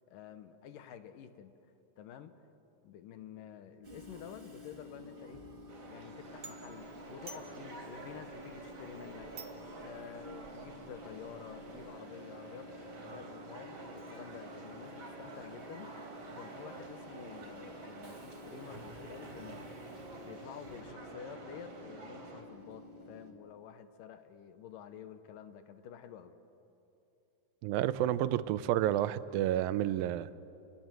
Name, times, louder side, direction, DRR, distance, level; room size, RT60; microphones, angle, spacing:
voice 1, 0.1-1.5 2.0-2.5 2.8-5.4 5.9-9.3 9.8-12.7 12.9-19.7 20.2-26.3, left 8 dB, 75° left, 10 dB, 2.6 m, -50 dB
Train / Subway metro underground, 3.8-23.3, left 2 dB, 25° right, 1.2 m, -51 dB
sound 1, 5.7-22.4, right 3 dB, 40° right, 4.4 m, -49 dB
sound 2, 6.2-12.0, right 4 dB, 60° right, 1.1 m, -55 dB
voice 2, 27.6-30.3, right 12 dB, 85° right, 14 dB, 2.4 m, -30 dB
28.5 x 20.5 x 7.6 m, 2.9 s
omnidirectional pair, 4.0 m